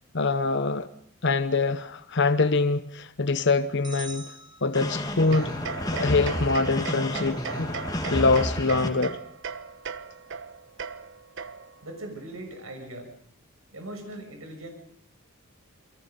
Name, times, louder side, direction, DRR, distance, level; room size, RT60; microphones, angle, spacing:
voice 1, 0.1-0.9 1.2-4.3 4.6-5.5 5.9-7.7 8.1-9.2, left 3 dB, 55° left, 1.0 m, -24 dB
sound 1, 3.8-5.4, right 4 dB, 20° right, 2.0 m, -44 dB
sound 2, 4.7-8.9, left 1 dB, 20° left, 2.7 m, -31 dB
sound 3, 5.3-11.9, right 6 dB, 60° right, 1.1 m, -37 dB
voice 2, 11.8-13.1 13.7-14.7, right 1 dB, 80° right, 6.6 m, -39 dB
28.5 x 23.0 x 5.4 m
head